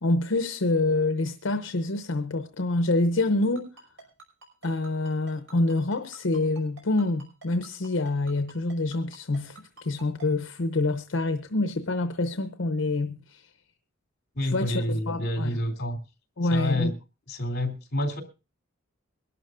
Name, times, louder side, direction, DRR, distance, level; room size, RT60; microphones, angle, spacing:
voice 1, 0.0-3.7 4.6-13.5 14.4-15.5 16.4-16.9, left 2 dB, 70° left, 0.8 m, -26 dB
Ringtone, 3.6-10.3, right 3 dB, 65° right, 5.6 m, -47 dB
voice 2, 14.3-16.0 16.5-16.9 17.3-18.2, left 1 dB, 55° left, 3.0 m, -28 dB
23.0 x 12.0 x 2.5 m
head